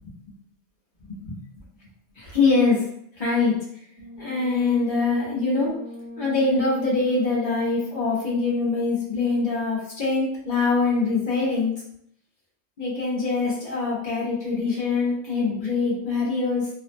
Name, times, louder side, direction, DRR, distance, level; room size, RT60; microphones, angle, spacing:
voice 1, 1.0-1.4 2.2-2.9 3.2-3.6 4.1-5.7 6.2-11.8 12.8-16.7, left 3 dB, 50° left, -5 dB, 0.9 m, -23 dB
Brass instrument, 3.9-8.3, equal, 80° left, 0.9 m, -39 dB
2.5 x 2.0 x 2.5 m, 0.70 s
omnidirectional pair, 1.2 m